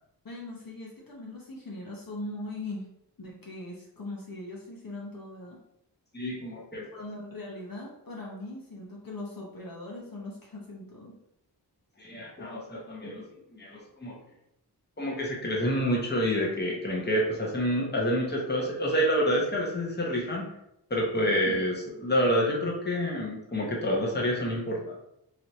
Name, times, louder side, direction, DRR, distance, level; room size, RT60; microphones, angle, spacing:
voice 1, 0.2-2.9 3.2-5.6 6.9-11.2, left 2 dB, 55° left, -3 dB, 0.8 m, -40 dB
voice 2, 6.1-6.9 12.0-13.3 13.5-14.2 15.0-20.5 20.9-24.9, equal, 25° left, -3 dB, 0.9 m, -28 dB
3.1 x 2.7 x 3.0 m, 0.79 s
wide cardioid pair, 50°, 41 cm